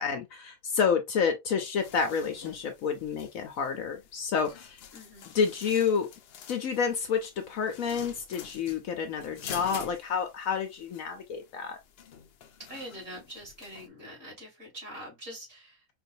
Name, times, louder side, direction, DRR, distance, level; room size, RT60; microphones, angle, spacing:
voice 1, 0.0-4.8 5.3-6.1 6.5-11.8, left 6 dB, 65° left, 1.0 m, -29 dB
sound 1, 1.7-13.9, left 8 dB, 80° left, 0.5 m, -48 dB
voice 2, 4.9-5.3 12.6-15.9, equal, 50° right, 2.9 m, -44 dB
4.5 x 2.6 x 2.6 m
omnidirectional pair, 1.7 m